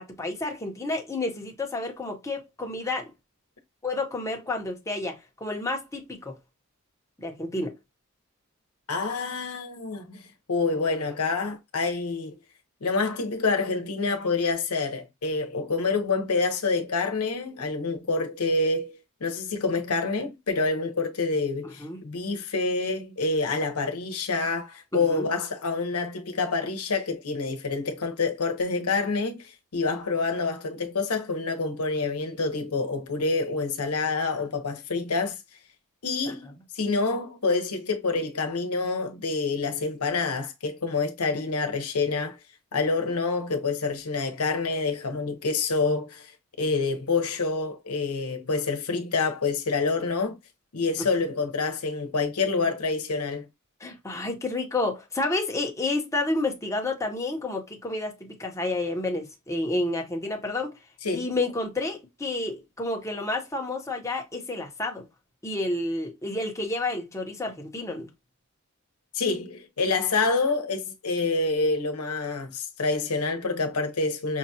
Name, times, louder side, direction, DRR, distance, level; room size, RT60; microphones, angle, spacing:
voice 1, 0.0-3.1 3.8-6.4 7.2-7.7 21.8-22.0 24.9-25.3 36.3-36.4 53.8-60.7 61.1-65.0 65.4-68.1, left 2 dB, 15° left, 0.8 m, -30 dB
voice 2, 8.9-12.3 12.8-35.4 36.0-42.4 42.7-46.3 46.6-50.4 50.7-53.5 61.0-61.3 69.1-74.4, left 3 dB, 90° left, 0.9 m, -27 dB
5.4 x 2.3 x 2.7 m
head